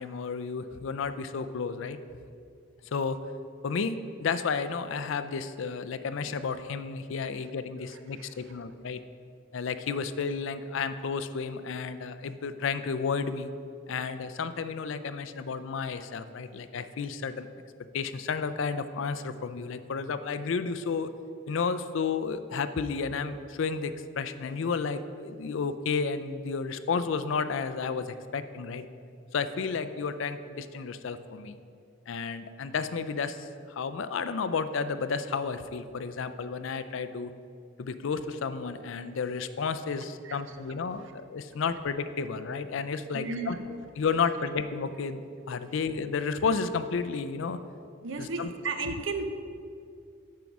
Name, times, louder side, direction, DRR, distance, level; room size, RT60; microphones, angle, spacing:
voice 1, 0.0-2.0 2.9-3.2 3.6-9.0 9.5-13.5 13.9-17.5 17.9-21.1 21.5-28.8 29.3-31.6 32.1-37.3 37.8-43.6 44.0-45.2 45.5-47.6 48.2-48.5, left 5 dB, 70° left, 11 dB, 0.4 m, -32 dB
voice 2, 7.9-8.5 40.2-40.6 43.1-43.7 48.0-49.2, right 3 dB, 65° right, 8 dB, 0.7 m, -35 dB
9.2 x 4.7 x 5.9 m, 2.4 s
head